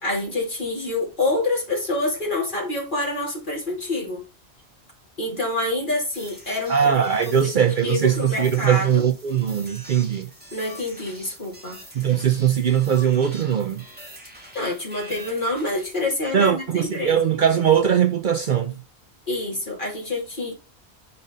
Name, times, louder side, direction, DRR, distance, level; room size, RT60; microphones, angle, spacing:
voice 1, 0.0-4.2 5.2-6.9 7.2-7.5 7.8-9.0 10.5-11.8 14.5-17.2 19.3-20.5, left 2 dB, 50° left, 3.0 m, -27 dB
sound 1, 6.1-16.0, right 1 dB, 10° right, 2.2 m, -45 dB
voice 2, 6.7-10.3 11.9-13.8 16.3-18.8, right 8 dB, 55° right, 0.7 m, -20 dB
5.4 x 4.1 x 5.1 m
omnidirectional pair, 1.1 m